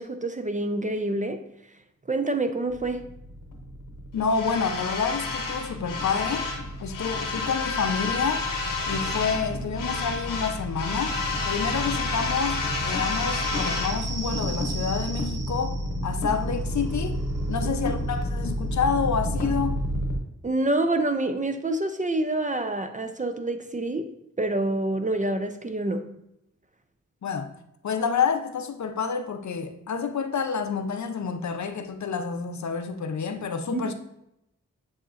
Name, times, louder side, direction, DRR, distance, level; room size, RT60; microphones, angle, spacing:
voice 1, 0.0-1.4 2.1-3.1 17.6-17.7 20.4-24.1 24.4-26.1 33.7-33.9, right 2 dB, 25° right, 0.4 m, -27 dB
sound 1, 2.7-20.2, left 2 dB, 85° left, 0.9 m, -29 dB
voice 2, 4.1-6.5 6.8-8.5 8.9-11.2 11.4-17.2 17.5-19.8 27.2-27.5 27.8-33.9, left 6 dB, 60° left, 0.6 m, -28 dB
sound 2, 12.9-20.0, right 4 dB, 75° right, 0.7 m, -41 dB
7.7 x 2.8 x 2.4 m
cardioid pair, 45°, 32 cm